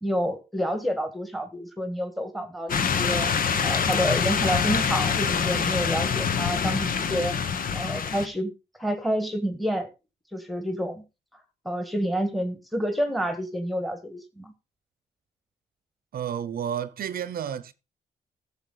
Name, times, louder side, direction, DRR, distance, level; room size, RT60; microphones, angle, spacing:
voice 1, 0.0-7.5 7.7-8.5 8.8-9.9 10.3-11.0 11.6-14.5, equal, ahead, 1.7 m, -29 dB
sound 1, 2.7-8.3, left 6 dB, 60° left, 1.2 m, -25 dB
voice 2, 16.1-17.7, right 9 dB, 65° right, 0.8 m, -31 dB
14.0 x 7.3 x 4.0 m
cardioid pair, 95°, 16 cm